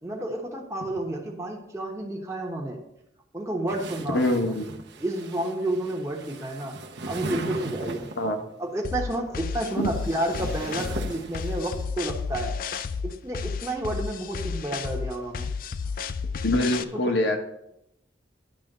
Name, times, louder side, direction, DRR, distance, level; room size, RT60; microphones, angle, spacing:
voice 1, 0.0-2.8 3.3-4.2 5.0-6.8 7.1-8.1 8.6-12.6 13.0-15.5 16.9-17.2, right 1 dB, 15° right, -1 dB, 1.0 m, -30 dB
sound 1, 3.7-8.4 9.4-11.8, right 2 dB, 70° right, 0.9 m, -38 dB
voice 2, 4.1-4.7 8.2-8.4 9.8-9.9 16.4-17.4, left 1 dB, 75° left, 5 dB, 1.1 m, -24 dB
sound 2, 8.8-16.8, left 5 dB, 50° left, 0.4 m, -32 dB
10.0 x 3.5 x 6.6 m, 0.80 s
head